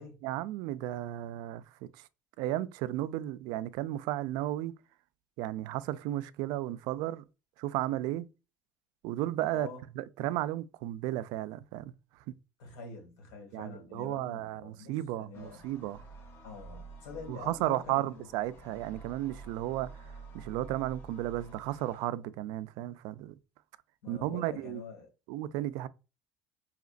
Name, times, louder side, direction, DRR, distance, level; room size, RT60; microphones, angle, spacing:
voice 1, 0.2-1.9 2.4-4.7 5.4-7.2 7.6-8.3 9.0-9.7 10.0-11.9 13.5-16.0 17.3-23.3 24.1-24.8 25.3-25.9, right 14 dB, 65° right, 0.3 m, -34 dB
voice 2, 12.6-15.6 16.4-18.3 24.0-25.1, left 5 dB, 90° left, 2.0 m, -46 dB
sound 1, 15.3-22.1, right 4 dB, 30° left, 0.8 m, -50 dB
4.9 x 2.8 x 2.5 m
cardioid pair, 155°, 7 cm